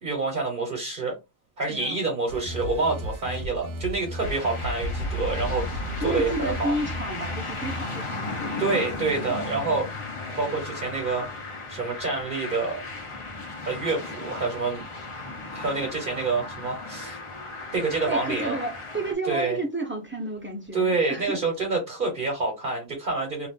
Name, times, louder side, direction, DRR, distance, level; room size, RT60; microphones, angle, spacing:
voice 1, 0.0-1.2 1.6-6.7 8.6-9.9 10.4-11.3 11.7-12.8 13.6-14.8 15.5-17.2 17.7-18.6 19.3-19.6 20.7-23.5, right 3 dB, 55° right, 1.0 m, -27 dB
voice 2, 1.7-2.1 6.0-8.8 9.2-9.4 18.1-21.4, right 2 dB, 15° right, 0.7 m, -31 dB
sound 1, 2.3-8.0, equal, 85° right, 0.8 m, -34 dB
sound 2, 4.2-19.1, left 3 dB, 35° left, 0.7 m, -36 dB
2.5 x 2.4 x 3.5 m
omnidirectional pair, 1.0 m